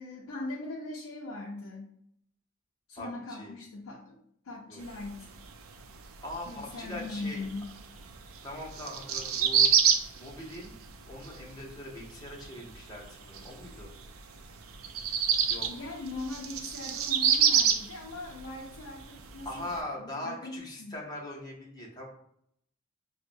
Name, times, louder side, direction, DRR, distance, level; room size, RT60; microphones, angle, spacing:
voice 1, 0.0-1.9 2.9-4.2 4.4-5.3 6.5-7.7 15.7-19.7 20.0-20.9, left 2 dB, 85° left, -3 dB, 0.5 m, -40 dB
voice 2, 3.0-3.5 4.7-4.8 6.2-7.5 8.4-10.8 11.1-13.9 15.4-15.7 19.4-22.1, left 1 dB, 20° left, -3 dB, 0.8 m, -41 dB
sound 1, 4.8-19.8, right 7 dB, 90° right, 0.4 m, -29 dB
4.7 x 2.1 x 2.6 m, 0.70 s
head